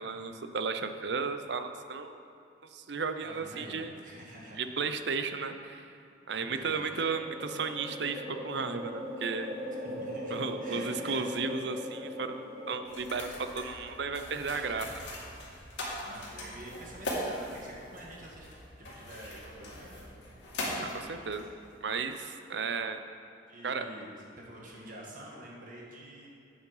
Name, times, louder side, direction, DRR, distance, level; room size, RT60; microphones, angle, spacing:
voice 1, 0.0-2.2 2.6-3.9 4.6-5.9 6.3-9.5 10.3-15.1 20.8-21.5 21.8-23.0 23.6-23.9, right 5 dB, 65° right, 9 dB, 0.6 m, -34 dB
voice 2, 3.2-4.6 6.5-7.0 9.8-11.2 16.0-20.2 23.5-26.3, right 1 dB, 45° right, -3 dB, 1.5 m, -47 dB
sound 1, 6.5-14.1, left 1 dB, 30° right, 2.3 m, -41 dB
sound 2, 12.9-21.8, left 1 dB, 70° left, 2.4 m, -40 dB
8.7 x 7.6 x 5.6 m, 2.6 s
head